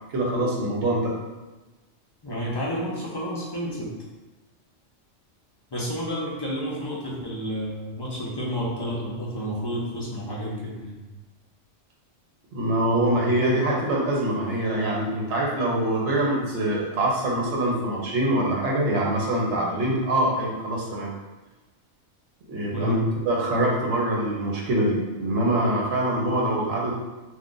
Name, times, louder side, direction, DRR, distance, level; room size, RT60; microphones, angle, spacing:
voice 1, 0.1-1.1 12.5-21.1 22.5-23.0 23.3-26.9, right 1 dB, 70° right, -3 dB, 1.0 m, -24 dB
voice 2, 2.2-3.9 5.7-11.0 22.7-23.1, equal, 35° left, -6 dB, 0.4 m, -30 dB
2.5 x 2.4 x 3.7 m, 1.2 s
omnidirectional pair, 1.3 m